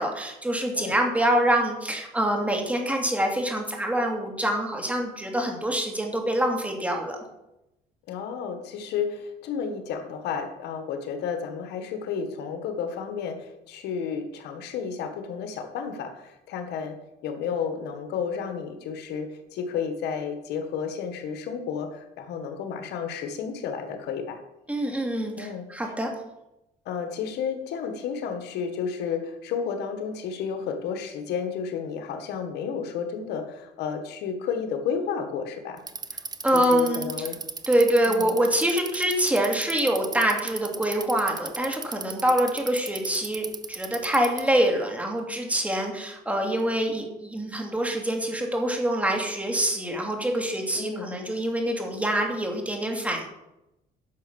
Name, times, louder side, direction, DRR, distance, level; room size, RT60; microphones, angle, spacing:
voice 1, 0.0-7.2 24.7-26.1 36.4-37.1 37.7-53.3, right 1 dB, 10° right, 1 dB, 2.6 m, -25 dB
voice 2, 8.1-17.0 17.2-24.4 25.3-25.7 26.8-35.8 36.5-37.4 38.0-38.3 50.7-51.1, left 6 dB, 80° left, 7 dB, 1.6 m, -32 dB
Bicycle, 35.8-44.6, right 5 dB, 25° right, 0.8 m, -36 dB
10.5 x 6.2 x 6.9 m, 0.90 s
cardioid pair, 110°, 17 cm